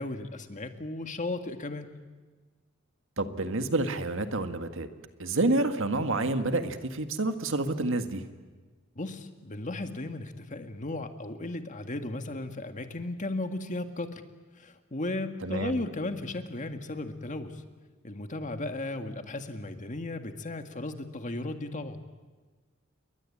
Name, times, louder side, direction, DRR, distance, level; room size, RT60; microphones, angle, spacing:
voice 1, 0.0-1.9 9.0-14.2 14.6-17.6 18.0-22.0, left 2 dB, 35° left, 7 dB, 1.9 m, -35 dB
voice 2, 3.2-4.9 5.2-8.3 15.4-15.8, right 2 dB, 65° right, 8 dB, 1.8 m, -28 dB
29.5 x 22.5 x 8.7 m, 1.4 s
head